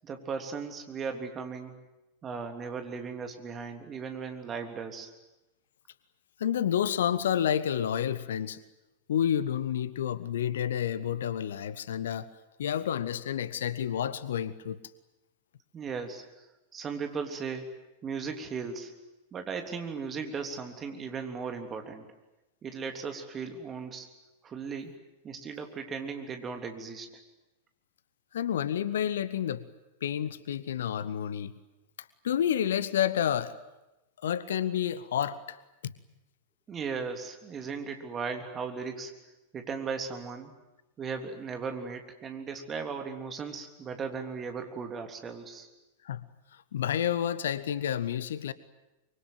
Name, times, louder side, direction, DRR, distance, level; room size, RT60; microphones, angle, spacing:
voice 1, 0.0-1.8 2.2-5.1 15.7-16.2 16.7-17.8 18.0-18.9 19.3-22.0 22.6-24.1 24.4-24.9 25.2-27.1 36.7-39.1 39.5-40.5 41.0-45.7, right 5 dB, 25° right, 5 dB, 3.3 m, -37 dB
voice 2, 6.4-8.6 9.1-12.3 12.6-14.8 28.3-29.6 30.0-31.6 32.2-33.6 34.2-35.6 35.8-35.9 46.0-46.3 46.7-48.5, left 9 dB, 60° left, 17 dB, 1.0 m, -29 dB
24.5 x 24.0 x 9.4 m, 0.98 s
figure-of-eight pair, 90°, 0 cm